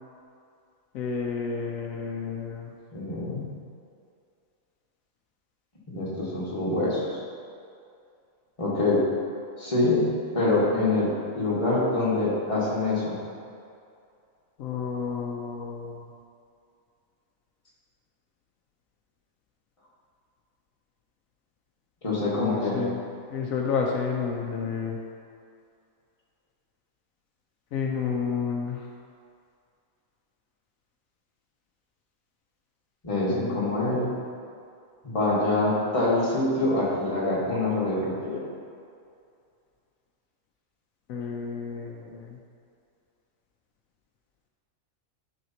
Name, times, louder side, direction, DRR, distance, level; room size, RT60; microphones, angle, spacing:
voice 1, 0.9-2.7 14.6-16.0 22.4-23.0 23.3-25.0 27.7-28.9 33.3-33.8 41.1-42.4, left 5 dB, 80° left, 0 dB, 1.0 m, -30 dB
voice 2, 2.9-3.5 5.9-7.2 8.6-9.0 9.6-13.2 22.0-22.8 33.0-34.1 35.0-38.4, left 2 dB, 25° left, -8 dB, 1.6 m, -25 dB
10.5 x 4.1 x 2.8 m, 2.4 s
omnidirectional pair, 1.4 m